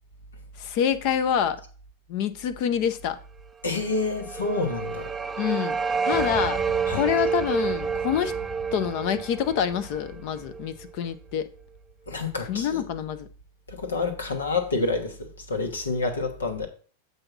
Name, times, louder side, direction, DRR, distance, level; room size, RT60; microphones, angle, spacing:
voice 1, 0.6-1.6 2.1-3.2 5.4-5.8 6.1-6.6 6.9-8.3 8.7-11.5 12.5-13.3, left 9 dB, 50° left, 0.7 m, -26 dB
voice 2, 3.6-5.1 6.9-7.1 12.1-12.8 13.7-16.7, left 3 dB, 85° left, 1.2 m, -28 dB
sound 1, 3.9-10.9, right 6 dB, 15° right, 0.5 m, -29 dB
7.7 x 2.8 x 5.9 m
hypercardioid pair, 95°, 0 cm